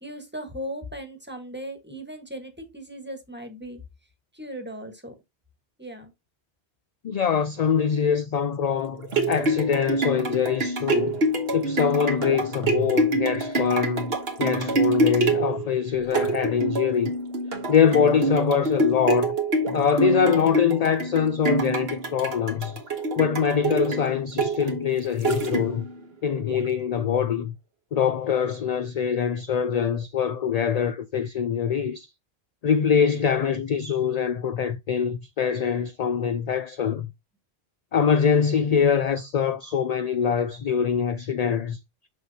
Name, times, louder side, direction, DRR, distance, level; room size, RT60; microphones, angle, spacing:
voice 1, 0.0-3.8 4.3-5.1 5.8-6.1, equal, 10° right, 1.4 m, -37 dB
voice 2, 7.0-11.2 11.5-14.1 14.4-17.1 17.7-19.3 19.7-22.8 23.2-25.8 26.2-27.6 27.9-32.1 32.6-37.1 37.9-41.8, left 7 dB, 55° left, 0.5 m, -24 dB
sound 1, 8.8-26.0 26.5-26.6, right 2 dB, 70° right, 1.4 m, -26 dB
6.8 x 6.4 x 2.8 m
omnidirectional pair, 1.0 m